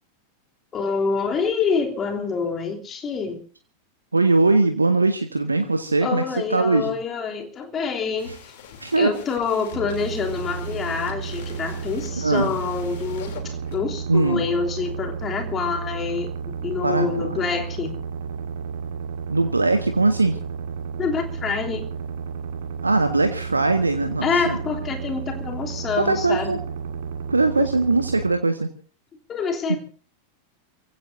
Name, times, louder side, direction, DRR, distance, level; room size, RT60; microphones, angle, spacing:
voice 1, 0.7-3.4 6.0-8.4 9.0-18.0 21.0-21.9 24.2-26.6 27.6-27.7 29.3-29.8, left 5 dB, 25° left, 2 dB, 3.2 m, -26 dB
voice 2, 4.1-6.2 6.5-6.9 8.8-9.1 12.2-12.5 14.1-14.4 16.8-17.5 19.3-20.4 22.8-24.6 26.0-26.6 27.3-28.7 29.7-29.8, right 3 dB, 80° right, 7 dB, 1.6 m, -20 dB
sound 1, 8.2-13.7, left 7 dB, 55° left, 3.3 m, -44 dB
sound 2, 9.7-28.3, right 6 dB, 60° right, 1.7 m, -32 dB
28.5 x 16.0 x 2.7 m, 0.39 s
figure-of-eight pair, 90°, 0 cm